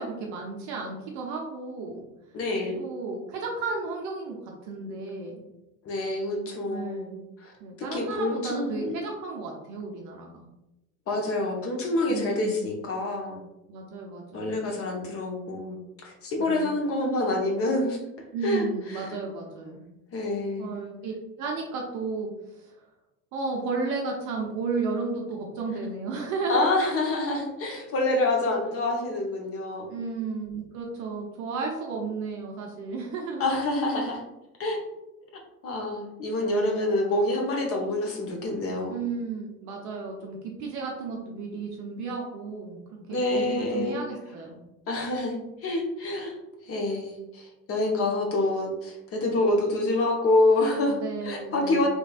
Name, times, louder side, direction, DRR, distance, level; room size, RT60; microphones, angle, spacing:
voice 1, 0.0-2.0 2.8-5.4 6.7-7.2 7.6-10.5 12.1-12.7 13.7-14.6 16.4-16.8 18.3-19.8 20.6-22.7 23.3-26.7 29.9-33.4 38.9-42.8 43.1-44.6 50.9-51.9, right 4 dB, 40° right, 0 dB, 0.7 m, -33 dB
voice 2, 2.3-2.8 5.8-7.1 7.4-7.5 7.8-8.9 11.1-13.4 14.3-18.0 18.4-18.6 18.9-19.1 20.1-20.7 26.5-29.9 33.4-34.2 34.6-34.8 35.6-39.0 43.1-44.0 44.9-45.4 45.6-46.3 46.7-51.0 51.2-51.9, left 2 dB, 30° left, 1 dB, 0.8 m, -27 dB
3.4 x 3.1 x 2.4 m, 0.94 s
figure-of-eight pair, 70°, 48 cm